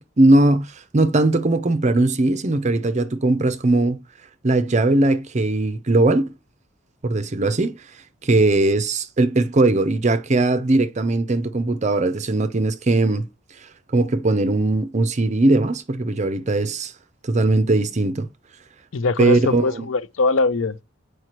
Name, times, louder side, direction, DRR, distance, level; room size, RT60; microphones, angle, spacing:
voice 1, 0.0-4.0 4.4-6.3 7.0-7.8 8.2-13.3 13.9-16.9 17.2-18.3 19.2-19.8, right 2 dB, 35° right, 0.6 m, -19 dB
voice 2, 18.9-20.8, left 3 dB, 80° left, 0.6 m, -21 dB
8.1 x 4.8 x 3.0 m
head